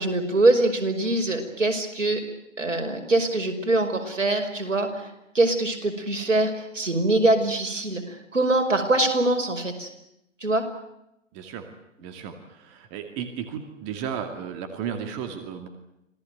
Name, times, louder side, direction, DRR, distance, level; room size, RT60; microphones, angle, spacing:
voice 1, 0.0-2.2 2.6-5.1 5.3-9.9 10.4-10.6, right 2 dB, 80° right, 6 dB, 5.7 m, -23 dB
voice 2, 11.3-11.7 12.0-15.7, right 8 dB, 25° right, 7 dB, 2.5 m, -34 dB
27.0 x 18.0 x 9.4 m, 0.85 s
figure-of-eight pair, 130°, 37 cm